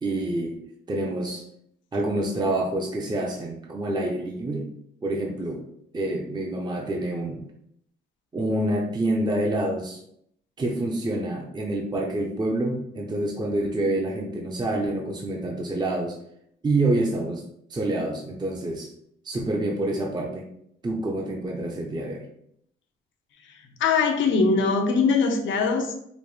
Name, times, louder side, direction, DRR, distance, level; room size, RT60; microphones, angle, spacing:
voice 1, 0.0-1.5 1.9-4.7 5.0-5.6 5.9-7.4 8.3-10.0 10.6-16.2 16.6-17.4 17.7-18.9 19.2-20.5 20.8-22.3, right 1 dB, 20° right, 0 dB, 0.6 m, -27 dB
voice 2, 23.8-25.9, left 4 dB, 75° left, 4 dB, 0.7 m, -21 dB
5.1 x 2.1 x 3.2 m, 0.71 s
cardioid pair, 90°, 20 cm